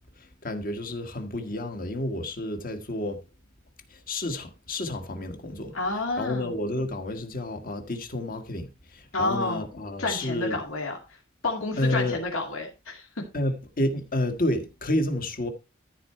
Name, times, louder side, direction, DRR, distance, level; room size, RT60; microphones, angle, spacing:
voice 1, 0.2-3.2 3.9-5.8 6.2-10.6 11.8-12.2 13.3-15.5, left 1 dB, 45° left, 1.6 m, -30 dB
voice 2, 5.7-6.5 9.1-9.6 10.0-11.0 11.4-13.3, left 2 dB, 75° left, 2.4 m, -29 dB
13.5 x 4.7 x 4.4 m
head